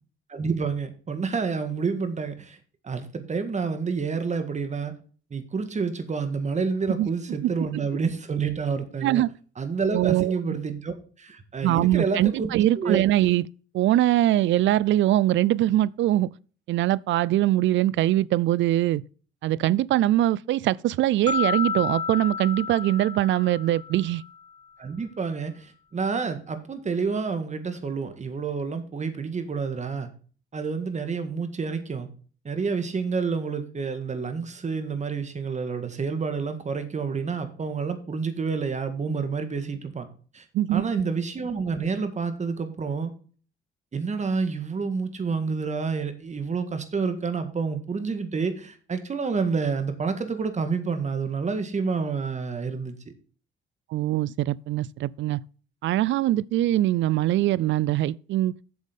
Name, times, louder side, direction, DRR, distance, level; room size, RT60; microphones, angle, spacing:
voice 1, 0.3-2.6 2.8-5.0 5.3-9.2 9.6-13.1 24.8-30.1 30.5-32.1 32.4-40.1 40.3-40.5 40.7-43.1 43.9-53.0, right 5 dB, 35° right, 1.8 m, -29 dB
voice 2, 9.9-10.3 11.6-13.4 13.7-16.3 16.7-19.0 19.4-24.2 40.5-40.9 53.9-55.4 55.8-58.6, right 14 dB, 70° right, 0.4 m, -22 dB
sound 1, 21.3-24.4, left 6 dB, 20° left, 2.3 m, -31 dB
7.8 x 7.3 x 5.3 m
cardioid pair, 90°, 20 cm